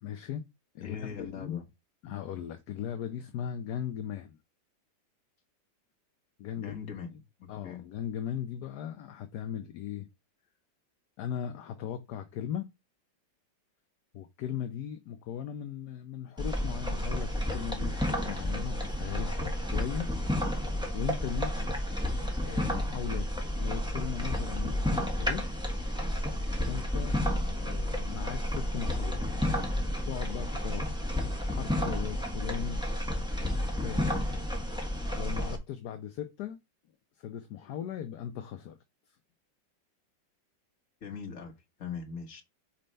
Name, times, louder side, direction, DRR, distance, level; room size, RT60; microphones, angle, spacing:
voice 1, 0.0-0.4 0.7-1.6 2.0-4.4 6.4-6.8 7.5-10.1 11.2-12.7 14.1-20.1 20.9-21.5 22.4-23.3 23.6-25.5 26.6-27.2 27.6-29.7 30.0-31.1 31.4-32.8 33.4-34.1 35.1-36.6 37.2-38.8, left 9 dB, 65° left, 1.1 m, -38 dB
voice 2, 0.8-1.6 6.5-7.1 7.4-7.9 21.6-21.7 41.0-41.5 41.8-42.4, left 6 dB, 45° left, 1.6 m, -40 dB
sound 1, 16.4-35.6, left 1 dB, 5° right, 1.1 m, -31 dB
4.4 x 4.3 x 5.2 m
omnidirectional pair, 2.1 m